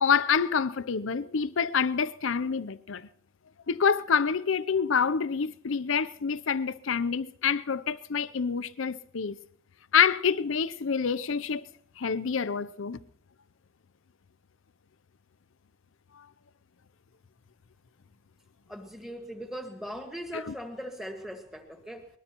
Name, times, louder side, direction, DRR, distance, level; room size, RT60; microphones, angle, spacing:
voice 1, 0.0-3.1 3.7-9.4 9.9-11.6 12.0-13.0 16.2-16.3 20.5-20.6, left 6 dB, 75° left, 0.6 m, -27 dB
voice 2, 18.7-22.1, equal, ahead, 1.8 m, -39 dB
22.5 x 20.5 x 3.0 m
head